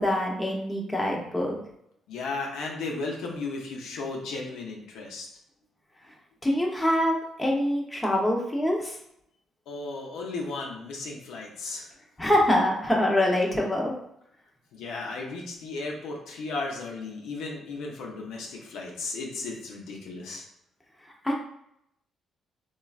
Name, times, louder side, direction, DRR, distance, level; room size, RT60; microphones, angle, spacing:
voice 1, 0.0-1.6 6.4-9.0 12.2-13.9 21.2-21.3, left 1 dB, 10° left, -1 dB, 0.7 m, -25 dB
voice 2, 2.1-5.3 9.7-11.9 14.7-20.4, left 3 dB, 85° left, -1 dB, 0.6 m, -35 dB
3.1 x 2.3 x 2.3 m, 0.77 s
cardioid pair, 90°, 0 cm